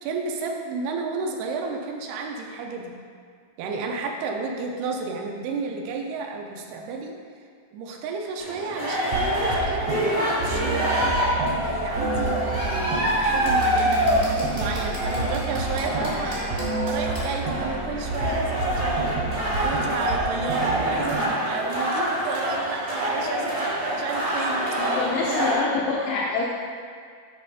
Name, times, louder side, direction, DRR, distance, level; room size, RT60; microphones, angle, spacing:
voice 1, 0.0-2.9 3.6-7.1 7.7-19.2 19.5-25.0 25.3-25.4, right 4 dB, 90° right, 1 dB, 2.7 m, -32 dB
sound 1, 8.4-25.5, equal, 50° right, 0.6 m, -26 dB
sound 2, 9.1-21.2, right 3 dB, 75° right, 1.5 m, -30 dB
voice 2, 16.0-16.4 24.8-26.4, left 4 dB, 85° left, -3 dB, 2.0 m, -27 dB
8.4 x 3.2 x 5.2 m, 2.1 s
omnidirectional pair, 4.4 m